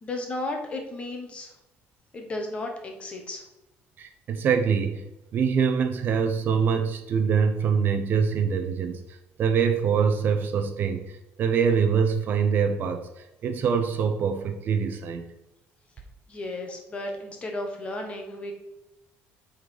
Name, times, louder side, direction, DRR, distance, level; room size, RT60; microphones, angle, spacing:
voice 1, 0.0-1.5 2.1-3.4 16.3-18.5, left 2 dB, 25° left, 3 dB, 1.2 m, -34 dB
voice 2, 4.0-5.1 5.3-13.1 13.4-15.2, right 6 dB, 40° right, 6 dB, 0.6 m, -24 dB
7.9 x 4.0 x 4.8 m, 0.94 s
cardioid pair, 175°, 5 cm